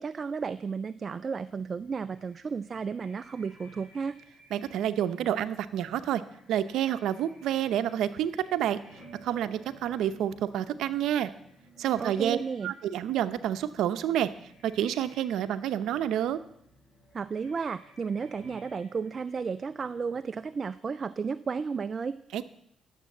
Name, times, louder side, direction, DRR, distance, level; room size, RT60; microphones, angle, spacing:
voice 1, 0.0-4.1 12.0-12.7 17.1-22.2, right 5 dB, 40° right, 12 dB, 0.4 m, -33 dB
sound 1, 1.5-20.6, right 1 dB, 35° left, 4.3 m, -57 dB
voice 2, 4.5-6.2 6.5-8.8 9.2-11.3 11.8-12.4 12.6-14.3 14.6-16.4 22.3-22.4, right 10 dB, 80° right, 12 dB, 0.7 m, -28 dB
12.0 x 7.5 x 7.3 m, 0.71 s
cardioid pair, 90°, 0 cm